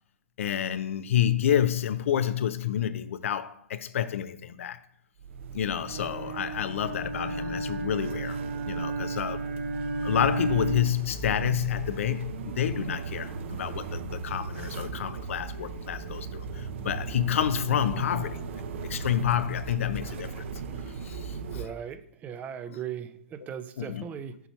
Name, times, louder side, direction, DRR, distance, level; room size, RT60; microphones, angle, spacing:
voice 1, 0.4-4.8 5.5-8.4 8.6-9.4 10.0-18.4 18.8-20.4 20.9-21.6 23.8-24.1, left 10 dB, 70° left, 0.5 m, -29 dB
sound 1, 5.2-21.7, right 5 dB, 60° right, 0.7 m, -37 dB
Bowed string instrument, 5.8-11.1, right 3 dB, 75° right, 1.5 m, -33 dB
voice 2, 21.5-24.4, right 8 dB, 20° right, 0.5 m, -38 dB
6.9 x 3.0 x 5.7 m
hypercardioid pair, 130°, 7 cm